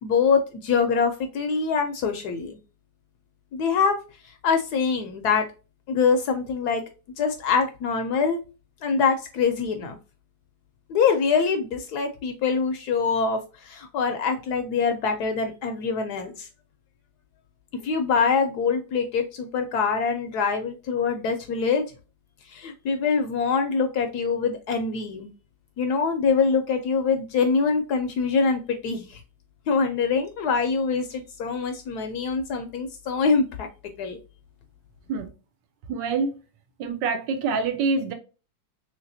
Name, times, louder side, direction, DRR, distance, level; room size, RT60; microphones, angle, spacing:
voice 1, 0.0-2.6 3.5-4.0 4.4-5.4 5.9-6.8 7.2-8.4 8.8-10.0 10.9-16.5 17.7-21.9 22.5-25.3 25.8-29.2 29.7-33.7 34.0-34.2, left 5 dB, 70° left, 1.0 m, -24 dB
voice 2, 35.9-36.3 36.8-38.1, right 4 dB, 75° right, 1.3 m, -25 dB
3.2 x 3.1 x 2.6 m
omnidirectional pair, 2.0 m